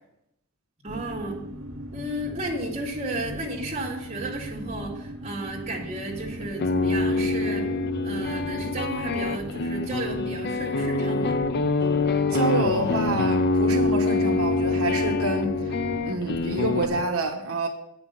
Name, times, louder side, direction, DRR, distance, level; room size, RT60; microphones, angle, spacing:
voice 1, 0.8-1.4 1.9-7.7 8.0-11.4, right 1 dB, 30° right, 2.3 m, -33 dB
sound 1, 0.9-17.0, equal, 65° right, 1.0 m, -38 dB
sound 2, 6.4-16.9, left 3 dB, 50° left, 0.5 m, -25 dB
voice 2, 12.3-15.7 16.0-17.7, right 2 dB, 85° right, 1.1 m, -27 dB
8.6 x 5.9 x 6.8 m
head